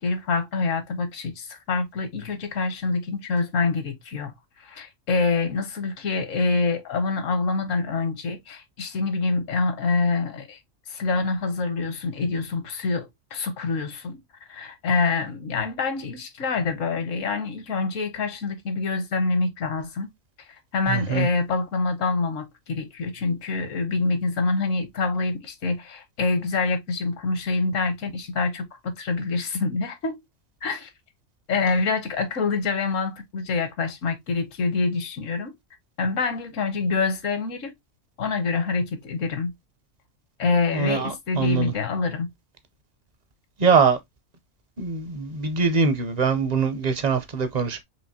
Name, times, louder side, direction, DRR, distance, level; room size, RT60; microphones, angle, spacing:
voice 1, 0.0-10.6 10.9-14.2 14.5-20.1 20.7-30.2 30.6-30.9 31.5-35.5 36.0-37.7 38.2-39.5 40.4-42.3, left 3 dB, 75° left, 1.2 m, -26 dB
voice 2, 20.9-21.3 40.7-41.7 43.6-44.0 44.8-47.8, right 5 dB, 45° right, 0.6 m, -23 dB
4.8 x 2.9 x 2.7 m
omnidirectional pair, 1.4 m